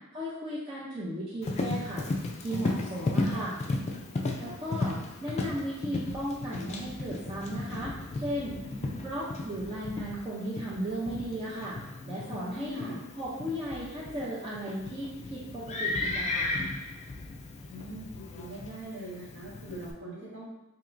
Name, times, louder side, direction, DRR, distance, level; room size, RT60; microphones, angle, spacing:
voice 1, 0.1-2.1 2.4-3.6 4.4-4.9 5.2-8.6 9.0-11.8 12.0-12.8 13.2-16.5, right 1 dB, 25° right, -8 dB, 0.6 m, -35 dB
Livestock farm animals working animals, 1.4-19.9, left 2 dB, 30° left, 0.4 m, -35 dB
voice 2, 17.7-20.5, right 1 dB, 55° right, -5 dB, 1.3 m, -42 dB
4.4 x 2.9 x 2.5 m, 0.99 s
head